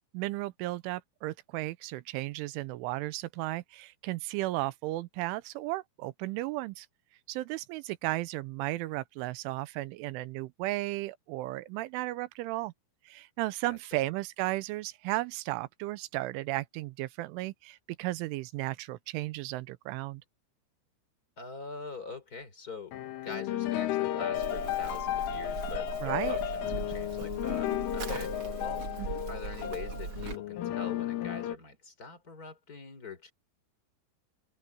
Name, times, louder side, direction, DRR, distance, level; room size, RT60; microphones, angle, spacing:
voice 1, 0.1-6.9 7.3-12.7 13.1-20.2 26.0-26.4 29.0-29.1, right 18 dB, 80° right, 3.0 m, -34 dB
voice 2, 21.4-22.9 23.2-28.3 28.6-28.8 29.3-33.3, left 3 dB, 20° left, 3.2 m, -43 dB
sound 1, 22.9-31.6, left 12 dB, 75° left, 4.3 m, -33 dB
Livestock farm animals working animals, 24.3-30.4, right 5 dB, 60° right, 1.3 m, -40 dB
open air
omnidirectional pair, 5.9 m